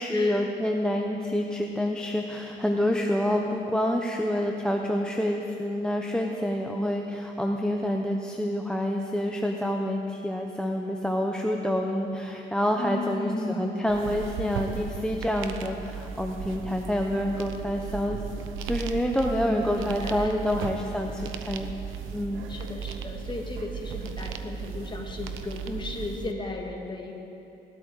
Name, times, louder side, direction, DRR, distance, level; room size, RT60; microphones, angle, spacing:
voice 1, 0.0-18.2 18.6-21.7 22.1-22.4, equal, 5° left, 1 dB, 0.9 m, -27 dB
voice 2, 12.8-13.9 19.3-20.3 22.5-27.1, left 2 dB, 25° left, 1 dB, 2.1 m, -35 dB
sound 1, 13.9-26.3, right 7 dB, 85° right, 0.8 m, -36 dB
18.5 x 12.5 x 4.9 m, 2.9 s
cardioid pair, 90°, 20 cm